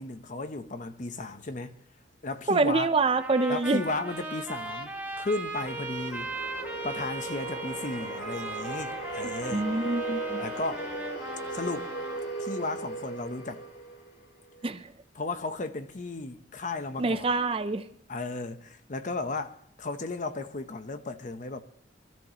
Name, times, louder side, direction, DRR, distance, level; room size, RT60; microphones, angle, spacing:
voice 1, 0.0-1.8 2.2-2.9 3.5-6.3 6.8-9.7 10.4-10.9 11.5-11.9 12.4-13.6 15.1-17.3 18.1-21.6, left 3 dB, 45° left, 0.8 m, -34 dB
voice 2, 2.5-3.8 9.5-10.4 14.6-14.8 17.0-17.8, right 3 dB, 30° right, 0.5 m, -26 dB
Trumpet, 3.2-12.2, right 2 dB, 10° right, 1.4 m, -38 dB
sound 1, 4.2-14.6, right 2 dB, 60° left, 2.5 m, -38 dB
23.5 x 13.5 x 2.9 m
head